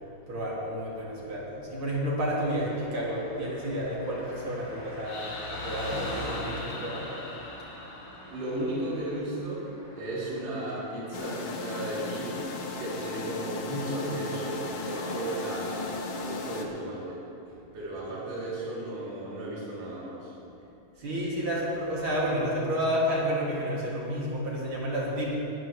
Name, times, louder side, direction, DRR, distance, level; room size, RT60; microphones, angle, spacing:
voice 1, 0.3-7.1 21.0-25.3, equal, 40° right, -5 dB, 2.8 m, -30 dB
Car passing by, 2.3-14.2 14.4-14.5, equal, 5° left, 2.1 m, -43 dB
sound 1, 5.0-8.9, left 3 dB, 50° left, 2.5 m, -42 dB
voice 2, 8.3-9.7 10.0-12.4 12.8-17.2 17.7-20.3, right 1 dB, 70° right, -8 dB, 4.5 m, -34 dB
sound 2, 11.1-16.7, left 3 dB, 75° left, 2.7 m, -36 dB
20.5 x 12.5 x 3.1 m, 2.8 s
omnidirectional pair, 3.9 m